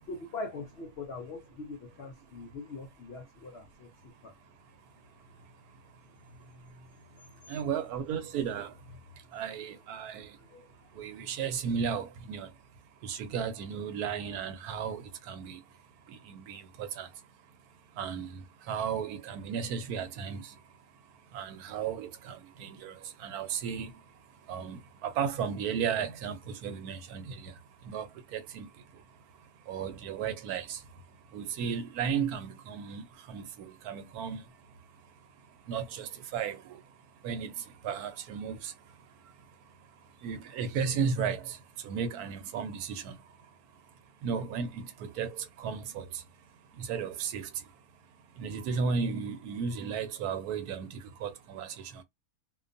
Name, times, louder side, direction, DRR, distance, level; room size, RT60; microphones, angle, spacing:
voice 1, 0.1-4.3 10.5-10.7, left 3 dB, 65° left, 0.6 m, -42 dB
voice 2, 7.5-8.7 9.3-10.3 11.0-12.5 13.0-15.6 16.1-17.1 18.0-18.4 18.7-20.4 21.3-23.9 24.5-27.5 27.9-28.1 28.3-28.7 29.7-30.8 31.3-34.4 35.7-36.8 37.2-37.5 37.8-38.7 40.2-41.6 41.8-43.2 44.2-46.1 46.8-47.5 48.4-52.0, right 6 dB, 85° right, 1.1 m, -34 dB
2.5 x 2.2 x 2.5 m
omnidirectional pair, 1.6 m